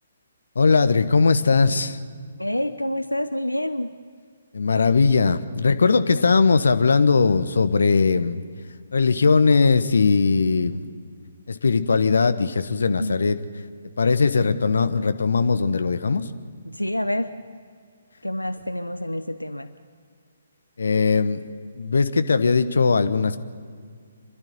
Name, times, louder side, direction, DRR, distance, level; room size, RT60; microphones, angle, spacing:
voice 1, 0.5-2.0 4.5-8.4 8.9-10.8 11.5-13.4 14.0-16.2 20.8-21.4 21.8-23.4, left 4 dB, 65° left, 10 dB, 1.1 m, -19 dB
voice 2, 2.4-3.9 6.1-6.2 12.9-13.2 16.7-17.3 18.2-19.7, left 1 dB, 90° left, 10 dB, 0.8 m, -27 dB
28.0 x 12.0 x 9.5 m, 2.1 s
figure-of-eight pair, 135°, 0 cm